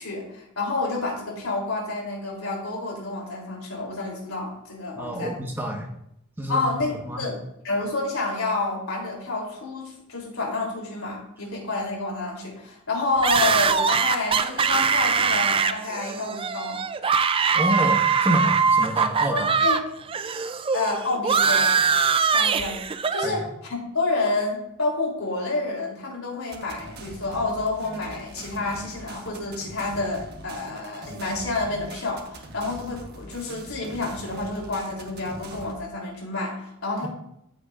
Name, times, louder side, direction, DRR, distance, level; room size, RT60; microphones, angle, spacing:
voice 1, 0.0-5.3 6.5-7.4 7.6-16.8 19.3-19.8 20.7-21.8 22.3-22.8 23.1-37.1, left 3 dB, 85° left, -1 dB, 3.3 m, -29 dB
voice 2, 5.0-5.9 6.4-7.2 17.5-19.5 22.2-22.4 23.2-23.4, equal, 10° right, 0 dB, 1.3 m, -28 dB
sound 1, 13.2-19.8 20.1-23.3, right 5 dB, 25° right, 0.3 m, -22 dB
sound 2, 26.5-35.8, right 1 dB, 50° right, 1.2 m, -42 dB
13.5 x 8.0 x 2.5 m, 0.79 s
head